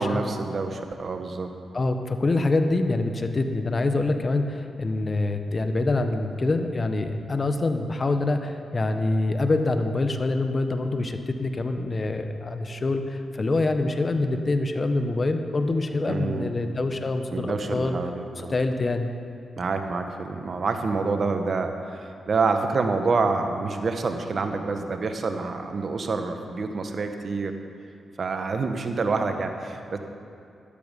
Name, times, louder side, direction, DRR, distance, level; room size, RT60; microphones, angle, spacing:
voice 1, 0.0-1.5 16.1-16.5 17.3-18.5 19.6-27.5 28.2-30.0, right 4 dB, 55° right, 6 dB, 1.3 m, -27 dB
voice 2, 1.7-18.0 18.4-19.1, left 2 dB, 40° left, 7 dB, 1.3 m, -25 dB
14.0 x 12.0 x 5.4 m, 2.6 s
supercardioid pair, 50°, 0 cm